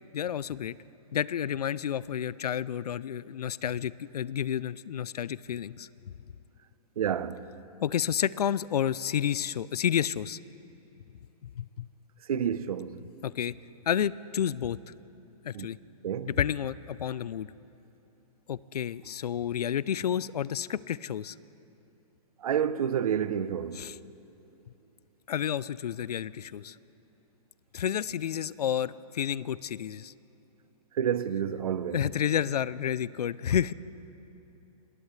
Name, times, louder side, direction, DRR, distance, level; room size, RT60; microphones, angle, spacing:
voice 1, 0.1-0.7 1.1-5.9 7.8-10.4 11.4-11.9 13.2-13.6 13.9-14.8 15.4-15.8 16.3-17.5 18.5-21.3 23.8-24.0 25.3-26.8 27.7-30.1 31.9-33.7, left 9 dB, 80° left, 0.6 m, -30 dB
voice 2, 7.0-7.4 12.3-13.0 15.5-15.7 16.0-16.3 22.4-23.8 30.9-32.1, right 8 dB, 65° right, 0.9 m, -29 dB
30.0 x 26.5 x 3.3 m
hypercardioid pair, 155°, 20 cm